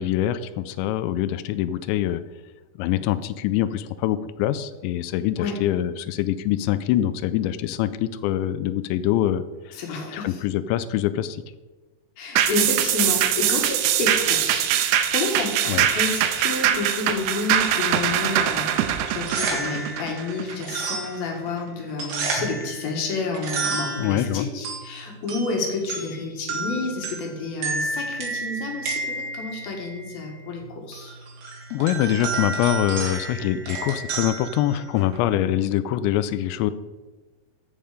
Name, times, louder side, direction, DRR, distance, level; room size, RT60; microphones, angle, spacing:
voice 1, 0.0-2.2 2.8-9.7 10.1-11.4 15.7-15.9 24.0-24.5 31.7-36.7, left 12 dB, 85° left, 14 dB, 2.8 m, -24 dB
voice 2, 9.8-10.3 12.2-30.6 30.9-31.1, left 3 dB, 60° left, 1 dB, 3.2 m, -30 dB
sound 1, 12.4-21.1 21.5-21.6, right 10 dB, 80° right, 2.6 m, -22 dB
sound 2, 19.1-35.3, right 3 dB, 60° right, 3.2 m, -32 dB
14.5 x 5.4 x 5.0 m, 1.2 s
omnidirectional pair, 5.1 m